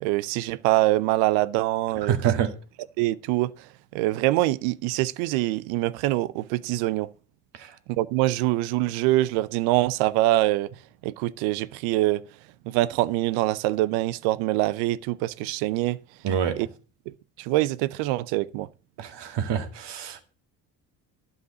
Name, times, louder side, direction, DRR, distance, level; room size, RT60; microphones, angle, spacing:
voice 1, 0.0-2.2 3.0-3.5 3.9-7.1 8.0-10.7 11.0-12.2 12.7-16.0 16.6-16.7 17.4-18.7, right 17 dB, 80° right, 0.8 m, -24 dB
voice 2, 2.1-2.6 7.5-7.8 16.2-16.6 19.0-20.2, right 8 dB, 60° right, 2.1 m, -26 dB
11.5 x 5.3 x 8.0 m
hypercardioid pair, 60°, 47 cm